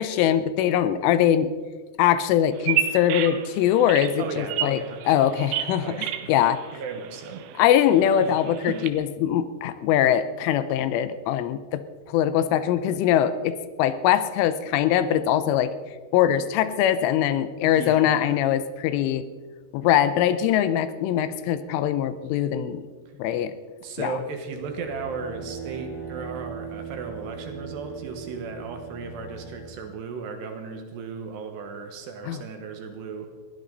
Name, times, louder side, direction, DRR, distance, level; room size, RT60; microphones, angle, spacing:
voice 1, 0.0-1.5 2.0-4.8 5.1-6.6 7.6-15.7 16.1-19.3 19.7-22.9 23.2-23.6 24.0-24.2 32.3-32.4, left 10 dB, 80° left, 13 dB, 3.2 m, -22 dB
Bird vocalization bird call bird song, 2.5-8.9, right 11 dB, 85° right, 3.7 m, -32 dB
voice 2, 4.2-5.0 5.8-6.3 6.7-7.6 8.2-8.3 8.7-8.8 17.6-18.4 23.8-33.3, right 5 dB, 70° right, 5 dB, 3.2 m, -35 dB
sound 1, 24.5-29.8, right 6 dB, 30° right, 6.3 m, -39 dB
21.0 x 16.0 x 4.0 m, 1.4 s
omnidirectional pair, 5.7 m